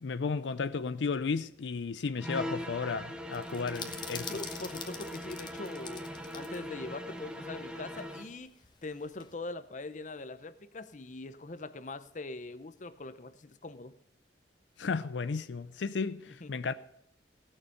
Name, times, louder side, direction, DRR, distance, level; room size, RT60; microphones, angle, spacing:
voice 1, 0.0-4.3 14.8-16.7, left 4 dB, 80° left, 0.5 m, -34 dB
sound 1, 2.2-8.3, equal, 5° right, 0.9 m, -41 dB
sound 2, 3.3-6.6 6.9-7.0 8.0-9.3, left 6 dB, 25° left, 1.2 m, -45 dB
voice 2, 4.2-6.0 6.3-8.5 8.8-14.0 16.3-16.6, left 2 dB, 45° left, 0.7 m, -42 dB
17.5 x 6.7 x 6.9 m
head